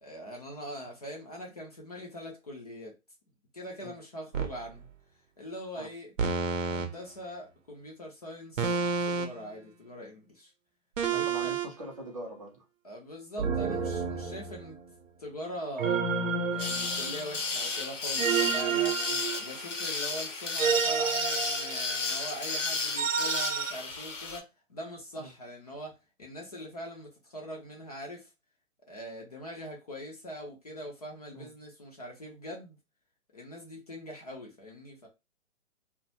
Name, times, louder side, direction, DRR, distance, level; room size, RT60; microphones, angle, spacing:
voice 1, 0.0-3.0 3.5-4.9 5.4-6.1 6.6-8.8 9.0-10.5 11.1-11.5 12.8-14.8 15.2-16.0 16.5-19.1 19.3-28.3 28.9-32.8 33.3-35.1, equal, 30° left, 0.5 m, -42 dB
sound 1, 4.3-4.6 6.2-6.9 8.6-9.5 11.0-11.7 13.4-14.8 15.8-17.4 18.2-19.8 20.6-22.1 23.0-23.7, right 6 dB, 65° right, 0.7 m, -30 dB
voice 2, 11.1-12.6 19.1-19.2 25.2-25.3 31.3-31.5, right 1 dB, 25° right, 0.5 m, -42 dB
sound 2, 16.6-24.4, left 3 dB, 60° left, 0.9 m, -33 dB
2.3 x 2.1 x 2.7 m
figure-of-eight pair, 140°, 41 cm